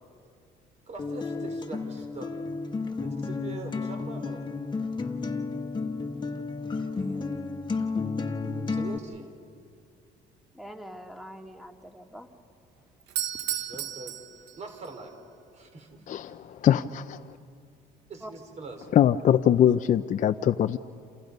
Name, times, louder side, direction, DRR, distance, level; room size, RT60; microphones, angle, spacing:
voice 1, 0.9-2.4 3.0-4.6 7.0-7.5 8.7-9.3 13.5-14.1 14.4-15.1 15.5-16.0 18.1-18.9, right 3 dB, 40° right, 4 dB, 4.1 m, -43 dB
Acoustic guitar, 1.0-9.0, left 4 dB, 25° left, 1.6 m, -32 dB
voice 2, 10.5-12.3 18.2-18.3, equal, ahead, 4 dB, 2.2 m, -44 dB
Doorbell, 13.0-15.0, right 11 dB, 90° right, 1.3 m, -33 dB
voice 3, 16.1-17.4 18.9-20.8, left 10 dB, 50° left, 9 dB, 0.6 m, -22 dB
29.0 x 28.5 x 5.4 m, 2.3 s
cardioid pair, 110°, 17 cm